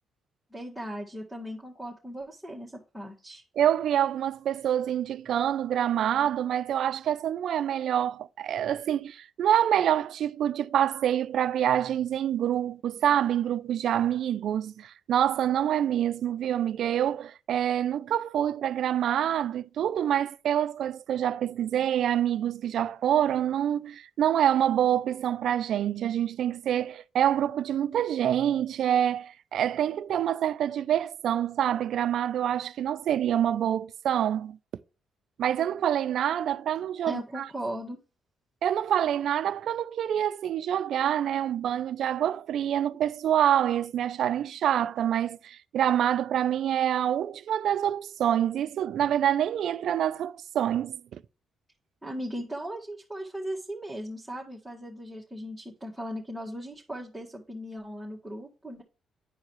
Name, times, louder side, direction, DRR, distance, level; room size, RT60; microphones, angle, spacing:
voice 1, 0.5-3.4 37.1-38.0 52.0-58.8, equal, ahead, 1.8 m, -38 dB
voice 2, 3.6-34.6 35.4-37.5 38.6-51.2, right 10 dB, 70° right, 0.4 m, -26 dB
10.5 x 4.7 x 3.1 m
cardioid pair, 90°, 0 cm